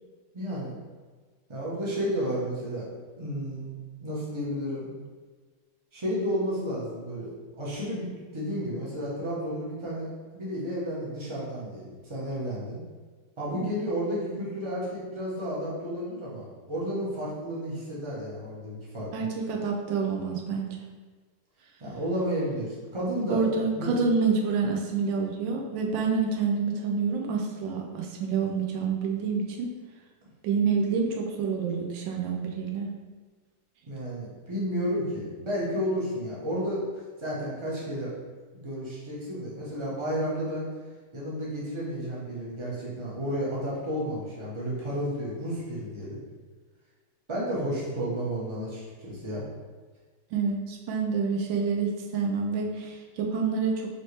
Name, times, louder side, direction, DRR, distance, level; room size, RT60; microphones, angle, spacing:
voice 1, 0.3-0.7 1.5-2.9 3.2-4.9 5.9-12.8 13.4-19.3 21.8-23.4 23.7-23.9 33.9-38.1 38.5-40.7 41.1-46.2 47.3-49.4, equal, 30° right, -6 dB, 0.5 m, -32 dB
voice 2, 19.1-20.8 23.3-29.7 30.4-32.9 50.3-53.9, right 5 dB, 85° right, 1 dB, 1.3 m, -28 dB
4.3 x 2.9 x 3.2 m, 1.4 s
omnidirectional pair, 2.0 m